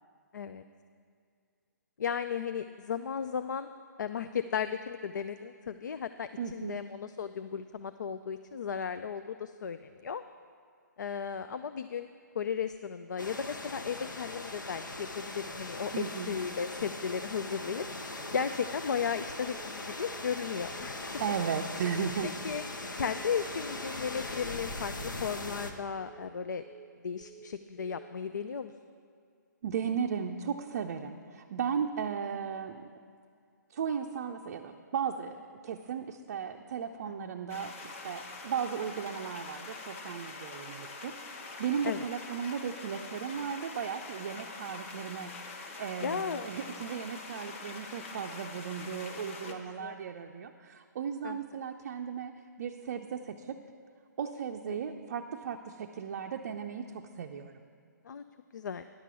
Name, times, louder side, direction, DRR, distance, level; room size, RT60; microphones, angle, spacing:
voice 1, 0.3-0.6 2.0-3.7 4.0-10.2 11.0-12.1 12.3-17.8 18.3-21.1 22.4-22.6 23.0-26.6 27.0-28.7 37.1-37.3 41.8-42.0 46.0-46.5 49.5-50.0 51.2-51.4 54.7-54.8 58.0-58.2 58.5-58.9, left 7 dB, 70° left, 10 dB, 0.4 m, -35 dB
voice 2, 6.4-6.8 15.9-16.3 21.2-22.3 29.6-32.9 33.7-45.3 45.8-53.6 54.2-57.6, right 7 dB, 45° right, 3 dB, 0.5 m, -36 dB
sound 1, 13.2-25.7, left 2 dB, 85° left, 1.0 m, -40 dB
Telephone, 17.0-17.3 17.6-17.9 18.2-18.5 18.8-19.1 19.4-19.7 20.0-20.3 20.6-20.9 21.2-21.5 21.8-22.1 22.4-22.7 23.0-23.3 23.6-23.9 24.2-24.5 24.8-25.1 25.4-25.7 26.0-26.3 26.6-26.9 27.2-27.5 27.8-28.1, right 8 dB, 5° right, 0.8 m, -53 dB
sound 2, 37.5-49.5, left 3 dB, 40° left, 1.1 m, -44 dB
10.5 x 5.9 x 6.8 m, 2.3 s
figure-of-eight pair, 135°, 10 cm